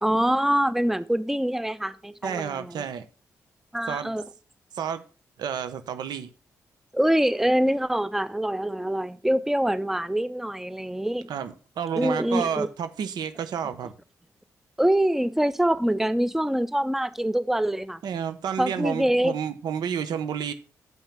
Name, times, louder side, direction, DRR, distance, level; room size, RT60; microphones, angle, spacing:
voice 1, 0.0-2.9 3.7-4.2 6.9-11.3 12.0-12.7 14.8-18.0 18.6-19.4, right 1 dB, 5° right, 0.7 m, -24 dB
voice 2, 2.2-3.0 3.9-4.1 4.7-5.0 5.4-6.3 11.3-13.9 18.0-20.5, right 8 dB, 80° right, 1.0 m, -30 dB
7.5 x 5.8 x 5.6 m
supercardioid pair, 50°, 7 cm